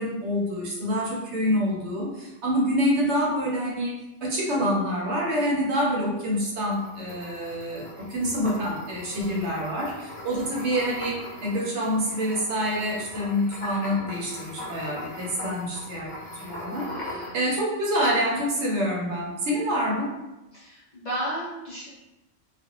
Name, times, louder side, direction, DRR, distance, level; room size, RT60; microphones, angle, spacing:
voice 1, 0.0-16.1 16.4-16.9 17.3-20.1, equal, 65° right, -3 dB, 0.9 m, -27 dB
sound 1, 6.6-17.6 18.0-18.5, left 1 dB, 70° left, 1.1 m, -40 dB
voice 2, 10.3-10.6 16.8-17.4 20.5-21.9, right 1 dB, 45° left, -8 dB, 0.6 m, -35 dB
2.4 x 2.3 x 2.8 m, 0.97 s
omnidirectional pair, 1.3 m